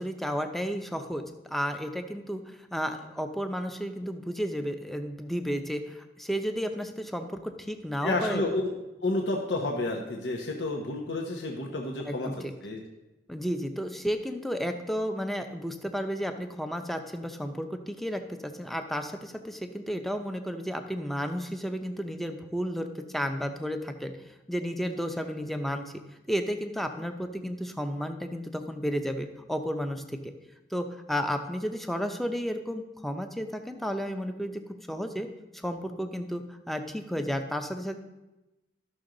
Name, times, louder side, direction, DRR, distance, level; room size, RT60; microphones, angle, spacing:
voice 1, 0.0-8.4 12.1-12.5 13.3-24.1 24.5-25.9 26.3-30.3 30.7-34.6 34.9-35.3 35.6-38.0, equal, ahead, 6 dB, 0.6 m, -32 dB
voice 2, 8.0-8.7 9.0-12.8, left 2 dB, 85° left, 1 dB, 1.0 m, -30 dB
12.5 x 6.2 x 3.9 m, 1.0 s
head